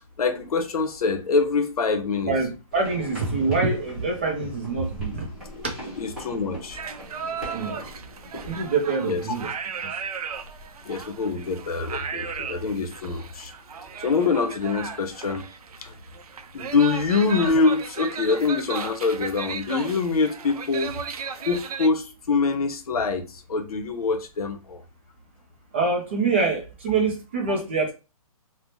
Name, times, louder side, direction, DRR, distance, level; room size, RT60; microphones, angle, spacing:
voice 1, 0.2-2.3 5.5-5.6 6.0-6.8 9.0-9.2 10.8-13.5 14.0-15.5 15.8-16.0 16.5-20.9 21.4-24.8, left 4 dB, 75° left, 0.7 m, -25 dB
voice 2, 2.3-5.3 5.6-5.9 7.5-7.8 8.5-9.5 25.7-27.9, right 4 dB, 20° right, 0.3 m, -25 dB
sound 1, 2.7-8.6, left 1 dB, ahead, 0.9 m, -41 dB
sound 2, 6.7-21.9, right 6 dB, 80° right, 0.5 m, -36 dB
3.2 x 2.0 x 2.6 m
hypercardioid pair, 165°, 19 cm